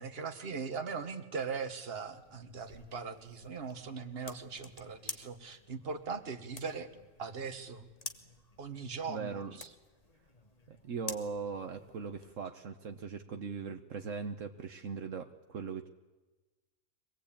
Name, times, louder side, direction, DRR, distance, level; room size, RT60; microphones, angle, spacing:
voice 1, 0.0-6.9 7.2-7.9 8.6-9.7, right 5 dB, 45° right, 7 dB, 1.6 m, -40 dB
sound 1, 2.0-12.3, left 3 dB, 30° left, 1.3 m, -50 dB
voice 2, 9.1-9.6 10.7-15.9, right 5 dB, 70° right, 6 dB, 1.4 m, -40 dB
24.5 x 18.5 x 8.7 m, 1.2 s
omnidirectional pair, 1.4 m